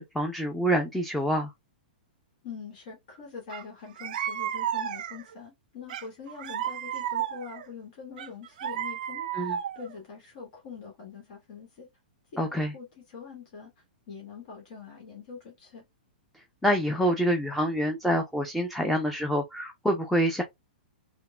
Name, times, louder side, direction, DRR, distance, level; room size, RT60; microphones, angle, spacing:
voice 1, 0.0-1.5 9.3-9.6 12.4-12.7 16.6-20.4, equal, ahead, 0.5 m, -26 dB
voice 2, 2.4-11.9 12.3-13.7 14.1-15.8, left 5 dB, 55° left, 1.3 m, -44 dB
sound 1, 3.5-3.6 4.0-5.3 5.9-7.7 8.2-9.9, right 10 dB, 60° right, 0.4 m, -33 dB
3.6 x 2.1 x 2.2 m
hypercardioid pair, 115°, 5 cm